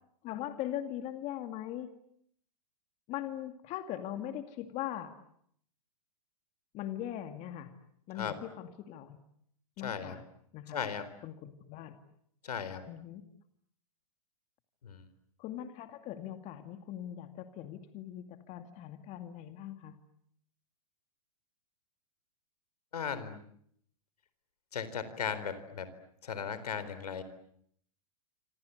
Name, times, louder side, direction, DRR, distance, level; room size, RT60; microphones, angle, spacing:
voice 1, 0.2-1.9 3.1-5.1 6.7-7.7 8.1-9.2 9.8-10.2 10.5-10.8 11.2-12.0 12.9-13.2 15.4-20.0, left 12 dB, 35° left, 8 dB, 2.3 m, -40 dB
voice 2, 9.8-10.2 10.7-11.0 12.4-12.8 14.8-15.0 22.9-23.4 24.7-25.9 26.2-27.2, left 7 dB, 85° left, 13 dB, 4.1 m, -36 dB
27.0 x 26.5 x 8.2 m, 0.69 s
hypercardioid pair, 125°, 19 cm